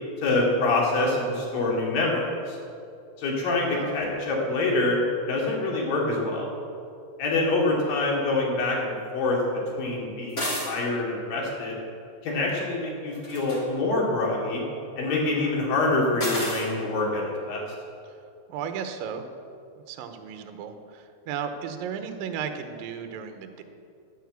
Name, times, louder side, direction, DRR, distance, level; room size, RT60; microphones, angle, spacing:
voice 1, 0.2-2.6 3.2-5.0 5.3-6.5 7.2-9.4 9.8-11.8 12.2-14.6 15.0-17.6, left 2 dB, 60° left, -2 dB, 4.0 m, -25 dB
sound 1, 10.3-10.7 13.1-13.6 16.2-16.7, equal, 20° left, 2.9 m, -30 dB
voice 2, 18.5-19.2 19.9-23.6, right 7 dB, 70° right, 7 dB, 2.4 m, -35 dB
11.5 x 10.0 x 8.2 m, 2.5 s
omnidirectional pair, 4.9 m